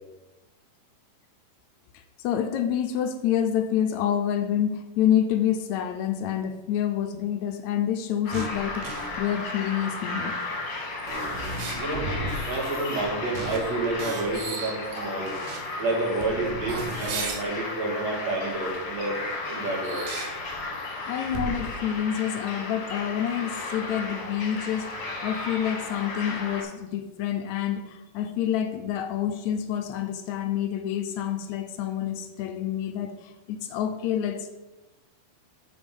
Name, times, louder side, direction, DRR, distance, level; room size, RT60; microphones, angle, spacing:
voice 1, 2.2-10.4 21.1-34.5, left 9 dB, 75° left, 7 dB, 1.8 m, -28 dB
sound 1, 8.2-26.6, left 3 dB, 45° left, 1.7 m, -34 dB
sound 2, 8.3-9.2 10.4-10.5 11.0-13.1 13.3-13.6 13.8-15.6 16.1-17.4 18.5-18.9 19.6-20.9 21.3-21.5, right 3 dB, 90° right, 3.0 m, -35 dB
voice 2, 11.8-12.1 12.5-15.3 15.8-20.1, right 2 dB, 60° right, -1 dB, 3.0 m, -29 dB
7.1 x 6.9 x 5.3 m, 1.1 s
omnidirectional pair, 3.7 m